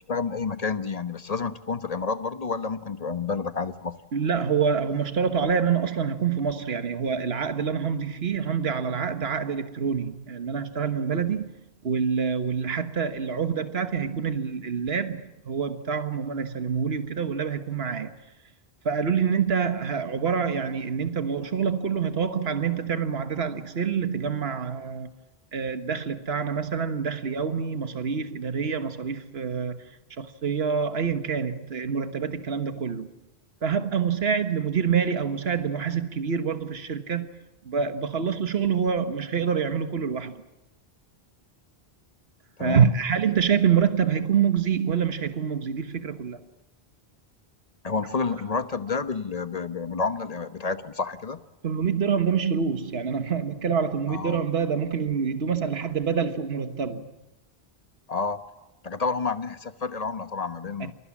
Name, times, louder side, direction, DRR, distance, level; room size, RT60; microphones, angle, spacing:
voice 1, 0.1-3.9 42.6-42.9 47.8-51.4 54.1-54.4 58.1-58.4 58.8-60.9, left 4 dB, 40° left, 1.3 m, -29 dB
voice 2, 4.1-11.5 11.8-18.1 18.8-25.1 25.5-33.1 33.6-37.3 37.6-40.4 42.6-46.4 51.6-57.2 60.8-60.9, right 6 dB, 75° right, 1.6 m, -26 dB
28.5 x 22.5 x 7.3 m
omnidirectional pair, 1.1 m